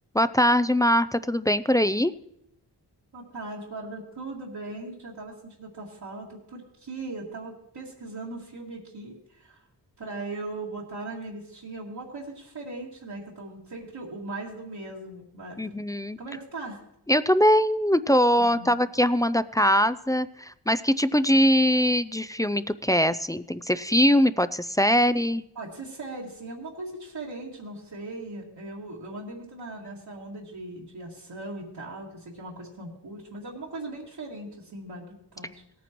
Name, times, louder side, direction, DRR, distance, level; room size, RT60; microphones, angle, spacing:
voice 1, 0.1-2.1 15.6-16.2 17.1-25.4, equal, 10° left, 14 dB, 0.3 m, -22 dB
voice 2, 3.1-9.6 10.0-15.7 16.2-16.8 18.4-18.8 25.6-35.6, right 2 dB, 70° right, -5 dB, 2.2 m, -39 dB
18.0 x 9.3 x 3.0 m, 0.75 s
cardioid pair, 60°, 42 cm